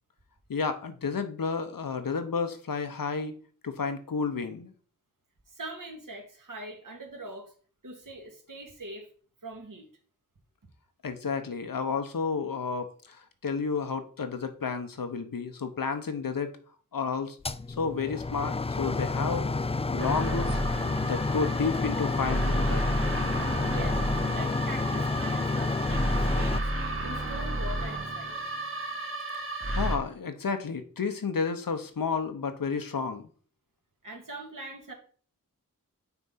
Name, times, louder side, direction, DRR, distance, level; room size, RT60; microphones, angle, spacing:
voice 1, 0.5-3.4 3.6-4.7 11.0-16.5 16.9-17.4 17.8-19.5 19.9-20.6 21.0-22.9 29.7-33.3, left 5 dB, 75° left, 8 dB, 1.0 m, -31 dB
voice 2, 5.5-7.5 7.8-9.1 9.4-9.9 23.7-24.0 24.3-26.1 26.3-26.7 27.0-28.4 34.0-34.9, right 2 dB, 70° right, 2 dB, 2.0 m, -42 dB
sound 1, 17.4-26.6, left 3 dB, 20° left, 0.4 m, -30 dB
sound 2, 20.0-30.0, right 1 dB, 40° right, 1.6 m, -32 dB
6.0 x 3.9 x 5.6 m, 0.42 s
cardioid pair, 40°, 34 cm